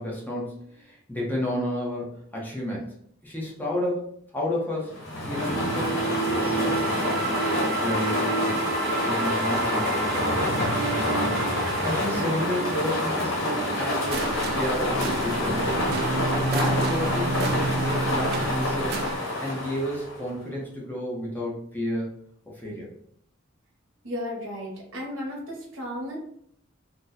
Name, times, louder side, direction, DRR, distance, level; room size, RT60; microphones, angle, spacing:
voice 1, 0.0-3.0 3.2-5.0 5.2-8.6 9.0-11.5 11.8-15.7 16.3-19.0 19.4-22.1 22.5-22.9, left 1 dB, 10° left, -4 dB, 0.7 m, -32 dB
sound 1, 4.9-20.3, left 1 dB, 90° left, 1.3 m, -27 dB
sound 2, 5.3-19.1, right 4 dB, 50° right, 0.4 m, -30 dB
voice 2, 24.0-26.2, left 1 dB, 75° right, -2 dB, 1.0 m, -34 dB
2.7 x 2.2 x 3.8 m, 0.68 s
head